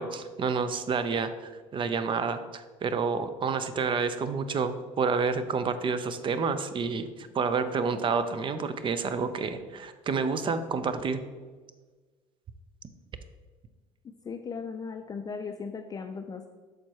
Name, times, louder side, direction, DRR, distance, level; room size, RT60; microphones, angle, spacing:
voice 1, 0.0-11.2, right 5 dB, 35° right, 11 dB, 0.6 m, -29 dB
voice 2, 14.0-16.5, left 5 dB, 25° left, 6 dB, 0.4 m, -37 dB
6.5 x 4.3 x 4.6 m, 1.4 s
supercardioid pair, 95°, 14 cm